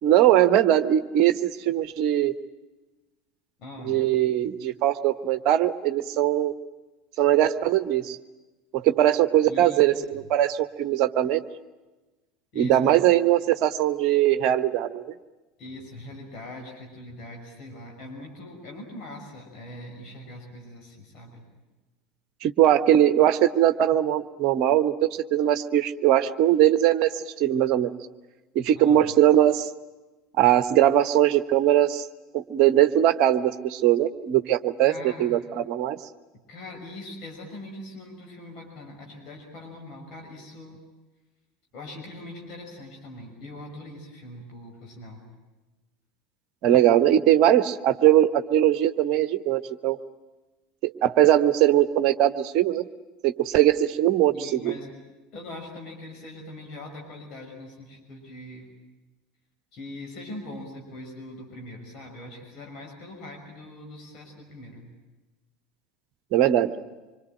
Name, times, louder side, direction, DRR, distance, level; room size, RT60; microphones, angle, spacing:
voice 1, 0.0-2.3 3.8-6.5 7.2-8.2 8.7-11.4 12.5-15.1 22.4-27.9 28.5-29.7 30.4-32.0 32.3-34.9 35.2-36.0 46.6-50.0 50.8-52.8 53.2-54.8 66.3-66.7, right 12 dB, 50° right, 11 dB, 1.2 m, -21 dB
voice 2, 3.6-4.0 9.4-10.2 12.5-12.8 15.6-21.4 28.7-29.1 34.8-35.3 36.5-40.8 41.7-45.3 54.3-54.9 55.3-58.7 59.7-64.9, left 1 dB, 45° left, 2 dB, 6.2 m, -42 dB
26.0 x 24.5 x 9.0 m, 1.1 s
figure-of-eight pair, 75°, 0 cm